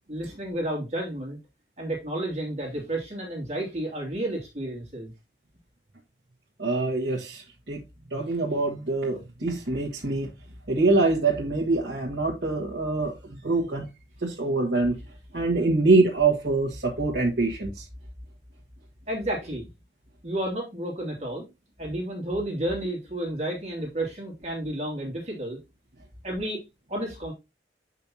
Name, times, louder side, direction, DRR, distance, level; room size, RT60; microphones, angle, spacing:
voice 1, 0.1-1.4 1.8-5.1 19.1-19.7 20.2-21.5 21.8-25.6 26.2-26.6 26.9-27.3, right 1 dB, 40° right, 2.7 m, -31 dB
voice 2, 6.6-7.8 8.1-10.3 10.7-13.9 14.2-15.0 15.3-17.8, right 3 dB, 75° right, 1.5 m, -24 dB
8.5 x 5.5 x 2.8 m
head